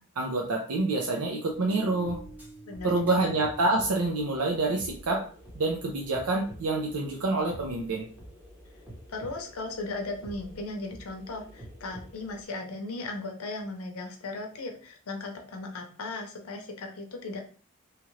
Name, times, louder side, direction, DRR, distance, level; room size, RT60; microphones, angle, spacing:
voice 1, 0.2-2.2 2.8-5.3 5.5-8.1, right 2 dB, 85° right, 0 dB, 0.5 m, -27 dB
sound 1, 1.5-12.4, right 1 dB, 5° right, 0.8 m, -48 dB
voice 2, 9.1-17.4, left 2 dB, 75° left, 3 dB, 0.7 m, -37 dB
2.9 x 2.4 x 3.1 m, 0.41 s
head